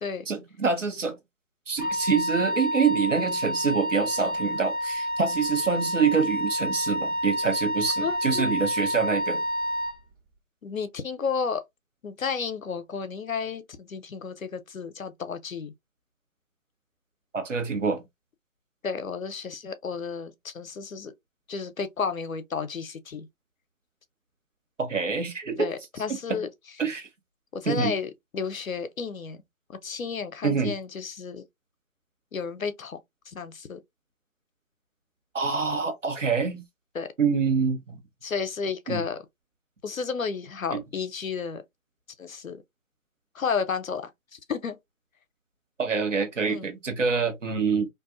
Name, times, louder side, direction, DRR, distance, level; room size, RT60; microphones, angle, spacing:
voice 1, 0.3-1.2 1.7-9.4 17.3-18.0 24.8-25.7 26.3-26.4 26.8-27.1 27.6-27.9 30.4-30.7 35.3-36.6 37.2-38.0 38.9-39.0 40.7-40.8 45.8-47.9, right 5 dB, 60° right, 1.1 m, -26 dB
Wind instrument woodwind instrument, 1.8-10.0, equal, 40° right, 1.2 m, -29 dB
voice 2, 8.0-8.6 10.6-11.6 12.0-15.7 18.8-21.1 21.5-23.3 25.6-26.5 27.5-29.4 29.7-31.4 32.3-33.0 33.3-33.8 36.9-37.1 38.2-39.2 39.8-41.6 42.2-42.6 43.3-44.8 46.5-46.7, left 5 dB, 70° left, 0.7 m, -32 dB
2.5 x 2.3 x 2.4 m
figure-of-eight pair, 160°, 42 cm